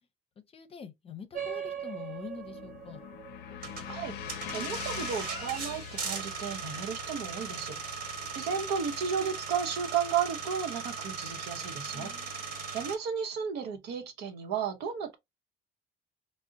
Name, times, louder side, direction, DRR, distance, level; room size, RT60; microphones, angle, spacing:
voice 1, 0.5-3.0 11.9-12.6, left 6 dB, 35° left, 0.6 m, -45 dB
sound 1, 1.3-6.3, right 8 dB, 45° right, 1.0 m, -42 dB
sound 2, 1.8-10.1, left 10 dB, 85° left, 0.5 m, -44 dB
sound 3, 3.6-13.0, right 5 dB, 65° right, 1.3 m, -38 dB
voice 2, 3.9-8.0 8.3-12.4 12.7-15.1, right 7 dB, 85° right, 0.8 m, -34 dB
3.7 x 2.1 x 2.5 m
cardioid pair, 110°, 17 cm